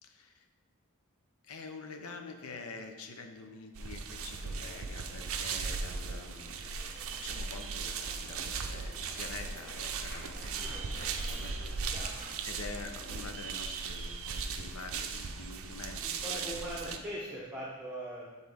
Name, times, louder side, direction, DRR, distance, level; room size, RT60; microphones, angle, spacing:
voice 1, 0.0-0.5 1.4-6.6 6.9-11.6 12.4-17.0, left 3 dB, 70° left, 6 dB, 0.6 m, -46 dB
sound 1, 3.7-17.0, right 5 dB, 60° right, 0.5 m, -38 dB
sound 2, 4.1-13.4, left 1 dB, 45° left, 1.1 m, -53 dB
voice 2, 11.8-12.1 16.2-18.3, right 1 dB, 5° right, -6 dB, 0.9 m, -40 dB
7.9 x 3.9 x 3.5 m, 1.4 s
head